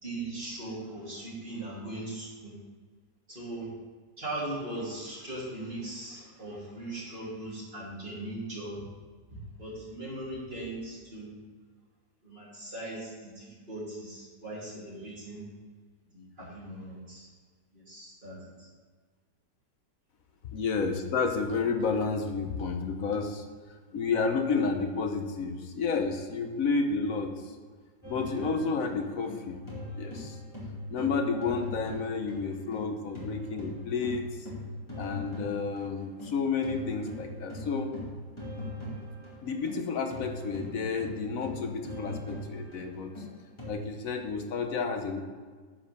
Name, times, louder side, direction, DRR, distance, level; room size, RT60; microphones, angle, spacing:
voice 1, 0.0-2.5 3.3-3.7 4.2-8.8 9.6-11.4 12.2-15.4 16.1-17.3 17.7-18.7, right 1 dB, 30° right, -7 dB, 3.6 m, -39 dB
voice 2, 20.5-23.4 23.9-27.5 28.1-29.6 30.0-30.4 30.9-34.5 34.9-37.9 39.4-43.1 43.7-45.2, left 4 dB, 60° left, 5 dB, 1.2 m, -31 dB
sound 1, 28.0-32.9 33.1-43.7, left 1 dB, 15° left, 2.5 m, -40 dB
10.0 x 5.1 x 6.7 m, 1.5 s
omnidirectional pair, 1.8 m